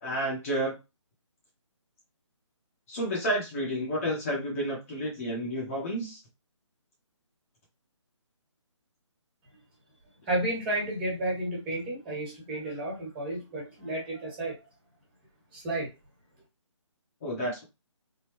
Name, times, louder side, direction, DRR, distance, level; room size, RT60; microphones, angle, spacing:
voice 1, 0.0-0.8 2.9-6.2 17.2-17.6, equal, 25° left, 1.0 m, -30 dB
voice 2, 10.3-14.6 15.5-15.9, right 1 dB, 20° right, 1.6 m, -32 dB
3.6 x 2.2 x 3.0 m
figure-of-eight pair, 155°, 16 cm